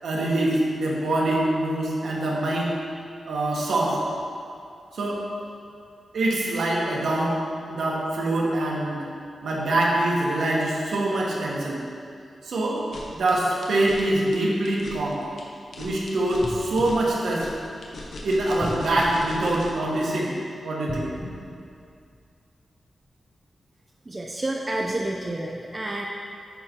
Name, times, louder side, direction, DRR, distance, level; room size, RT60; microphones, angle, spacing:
voice 1, 0.0-2.7 3.3-4.0 4.9-5.2 6.1-7.4 7.7-9.1 9.4-11.8 12.4-12.8 13.1-15.2 15.8-17.5 18.2-20.3 20.6-21.1, right 1 dB, 85° right, -4 dB, 1.5 m, -24 dB
sound 1, 12.8-19.9, left 2 dB, 75° left, 1.0 m, -39 dB
sound 2, 16.4-18.0 18.6-20.1 20.8-22.5 23.0-23.1, left 1 dB, 10° left, 1.0 m, -38 dB
voice 2, 24.1-26.0, right 1 dB, 25° right, 0 dB, 0.4 m, -29 dB
9.7 x 4.3 x 4.5 m, 2.4 s
wide cardioid pair, 140°, 0 cm